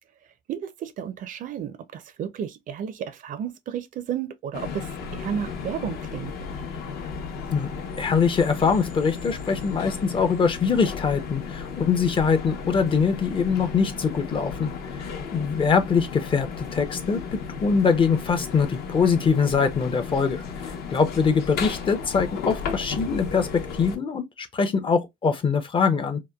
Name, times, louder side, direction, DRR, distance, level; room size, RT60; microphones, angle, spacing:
voice 1, 0.5-6.3, right 8 dB, 50° right, 0.4 m, -32 dB
sound 1, 4.5-24.0, left 6 dB, 70° left, 0.8 m, -34 dB
voice 2, 8.0-26.2, left 5 dB, 30° left, 0.5 m, -23 dB
2.8 x 2.2 x 2.2 m
cardioid pair, 110°, 17 cm